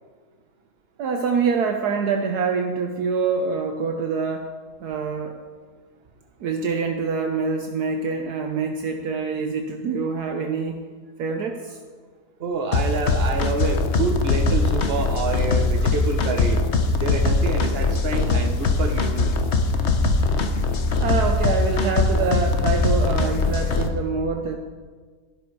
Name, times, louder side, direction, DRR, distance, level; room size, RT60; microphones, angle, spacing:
voice 1, 1.0-4.5 4.8-5.4 6.4-10.9 11.2-11.8 21.0-24.6, right 5 dB, 70° right, 4 dB, 1.3 m, -25 dB
voice 2, 12.4-16.6 17.0-19.3, right 3 dB, 40° right, 4 dB, 1.2 m, -27 dB
sound 1, 12.7-23.9, left 3 dB, 50° left, 1.1 m, -21 dB
13.0 x 12.0 x 4.8 m, 1.5 s
omnidirectional pair, 1.8 m